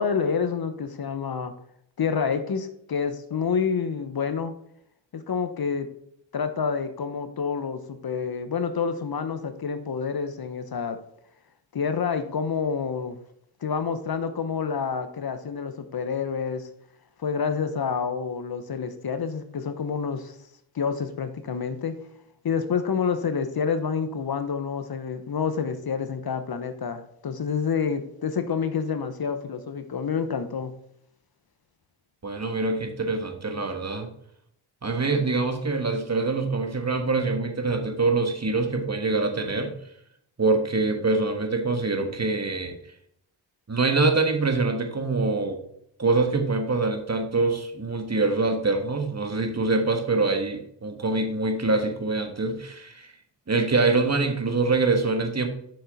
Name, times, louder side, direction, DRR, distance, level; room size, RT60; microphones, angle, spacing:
voice 1, 0.0-1.5 2.0-4.5 5.1-5.9 6.3-11.0 11.7-13.2 13.6-16.7 17.2-20.4 20.7-22.0 22.4-30.7, left 6 dB, 50° left, 10 dB, 0.9 m, -28 dB
voice 2, 32.2-34.1 34.8-39.7 40.4-42.7 43.7-45.6 46.0-53.1 53.5-55.5, right 3 dB, 35° right, 5 dB, 1.5 m, -24 dB
6.6 x 6.3 x 4.0 m, 0.71 s
cardioid pair, 50°, 47 cm